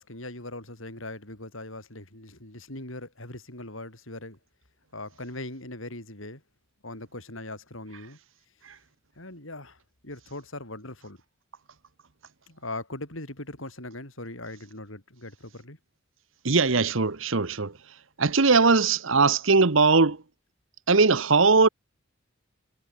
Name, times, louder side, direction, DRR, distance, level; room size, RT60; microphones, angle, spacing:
voice 1, 0.0-4.4 4.9-6.4 6.8-8.2 9.2-11.2 12.5-15.8, left 2 dB, 75° left, 7.4 m, -40 dB
voice 2, 16.4-17.7 18.2-20.2 20.9-21.7, right 4 dB, 70° right, 1.2 m, -20 dB
head